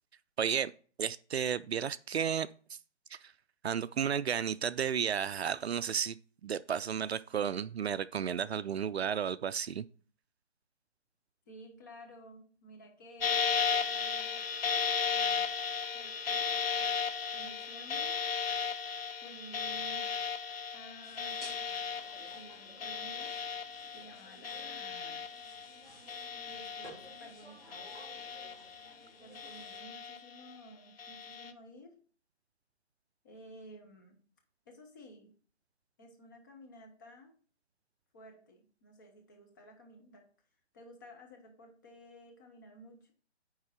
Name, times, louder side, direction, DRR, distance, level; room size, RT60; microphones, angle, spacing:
voice 1, 0.4-0.7 1.0-2.8 3.1-3.3 3.6-6.2 6.4-9.9, right 8 dB, 65° right, 0.5 m, -33 dB
voice 2, 11.5-14.4 15.0-15.6 15.9-17.0 17.3-18.3 19.2-20.2 20.7-25.3 26.5-27.9 29.2-32.0 33.2-34.2 34.7-35.3 36.0-37.3 38.1-40.3 40.7-43.1, equal, 15° left, 0.9 m, -54 dB
sound 1, 13.2-25.8 26.1-27.3 27.7-28.9 29.3-30.4 31.0-31.5, left 6 dB, 55° left, 0.8 m, -35 dB
sound 2, 21.0-29.8, right 1 dB, ahead, 1.2 m, -56 dB
9.5 x 3.7 x 5.5 m
hypercardioid pair, 160°, 34 cm